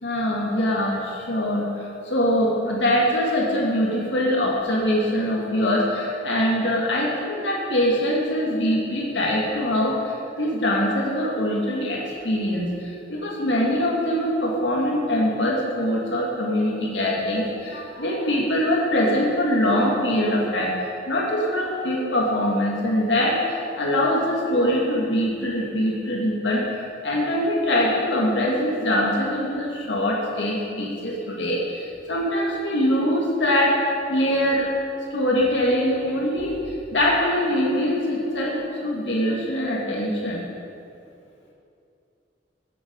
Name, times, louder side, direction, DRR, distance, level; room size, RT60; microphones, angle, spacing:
voice 1, 0.0-1.7 2.0-20.7 21.1-26.6 27.0-33.7 34.1-34.7 35.1-36.5 36.9-40.4, left 1 dB, 85° left, -3 dB, 2.1 m, -23 dB
17.0 x 8.0 x 5.2 m, 2.6 s
head